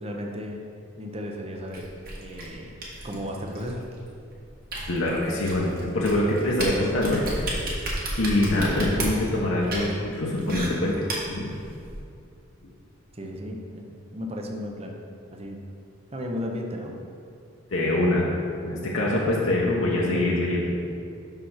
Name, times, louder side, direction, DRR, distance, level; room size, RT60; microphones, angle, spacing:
voice 1, 0.0-0.6 1.0-1.9 2.2-3.8 13.1-13.9 14.1-15.0 15.3-15.6 16.1-16.9, equal, 30° right, 1 dB, 0.7 m, -34 dB
sound 1, 1.7-12.0, right 1 dB, 45° right, 1.5 m, -34 dB
voice 2, 4.9-7.5 8.2-10.9 11.3-11.5 17.7-18.3 18.6-20.7, left 1 dB, 70° left, -4 dB, 1.0 m, -24 dB
5.9 x 5.7 x 5.7 m, 2.5 s
head